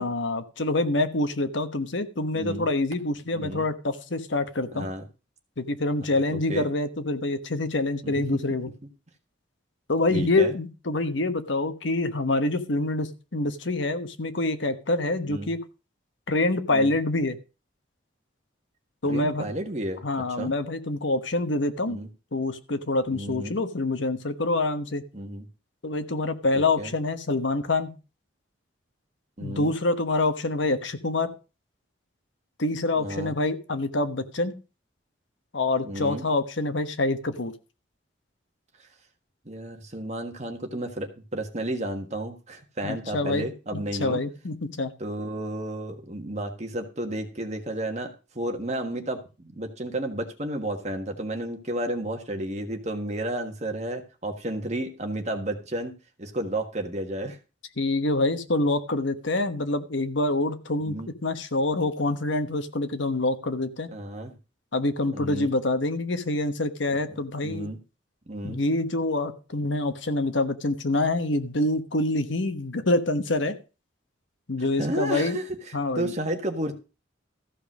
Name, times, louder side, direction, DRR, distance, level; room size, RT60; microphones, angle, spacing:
voice 1, 0.0-4.9 5.6-8.7 9.9-15.6 16.3-17.4 19.0-19.5 20.0-22.0 22.3-25.0 25.8-27.9 29.4-31.3 32.6-34.5 35.5-37.5 42.8-43.5 43.7-44.9 57.8-63.9 64.7-67.7 68.4-73.6 74.5-75.4 75.7-76.1, left 2 dB, 75° left, 10 dB, 1.2 m, -26 dB
voice 2, 2.3-2.7 3.3-3.7 4.7-5.0 6.1-6.7 8.0-8.2 10.1-10.5 15.3-15.5 16.7-16.9 19.0-20.0 20.4-20.5 21.9-22.1 23.1-23.6 25.1-25.4 26.5-26.9 29.4-29.7 32.9-33.3 35.8-36.2 39.4-44.2 45.0-48.1 48.3-55.9 56.2-57.4 60.8-61.1 63.9-64.3 65.1-65.5 67.1-67.2 67.4-67.8 68.3-68.6 74.6-76.7, right 1 dB, 35° right, 5 dB, 1.6 m, -32 dB
14.5 x 5.3 x 6.1 m, 0.33 s
head